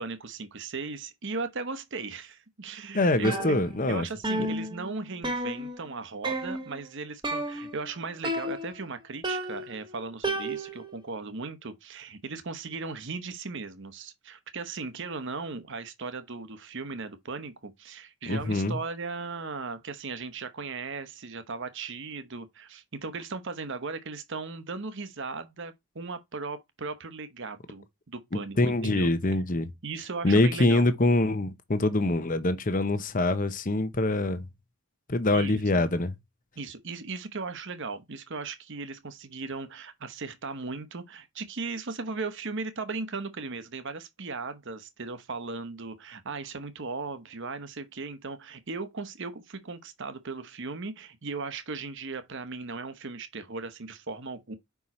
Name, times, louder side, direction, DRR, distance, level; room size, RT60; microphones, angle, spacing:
voice 1, 0.0-3.6 3.9-29.1 29.8-30.9 35.3-35.8 36.6-54.5, right 4 dB, 55° right, 0.9 m, -37 dB
voice 2, 2.9-4.0 4.4-4.5 18.3-18.8 28.6-29.7 30.2-34.4 35.1-36.1, left 2 dB, 35° left, 0.8 m, -24 dB
sound 1, 3.2-4.0 4.2-5.9 6.2-6.8 7.2-7.9 8.2-8.9 9.2-10.9, right 1 dB, 20° right, 1.3 m, -32 dB
5.5 x 4.7 x 4.2 m
head